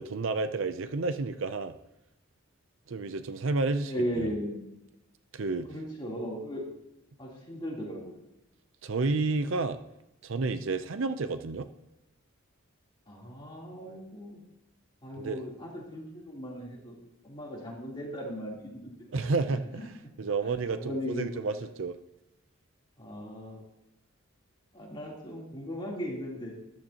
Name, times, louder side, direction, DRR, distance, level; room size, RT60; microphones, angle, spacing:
voice 1, 0.0-1.7 2.9-4.3 5.3-5.7 8.8-9.8 10.2-11.7 15.2-15.4 19.1-19.9 20.2-22.0, right 3 dB, 65° right, 11 dB, 0.5 m, -30 dB
voice 2, 3.8-4.6 5.7-6.6 7.2-8.2 13.1-14.4 15.0-17.0 17.2-19.2 19.8-20.1 20.4-21.4 23.0-23.6 24.7-26.5, equal, 25° left, -4 dB, 3.2 m, -37 dB
13.5 x 12.0 x 2.9 m, 0.88 s
head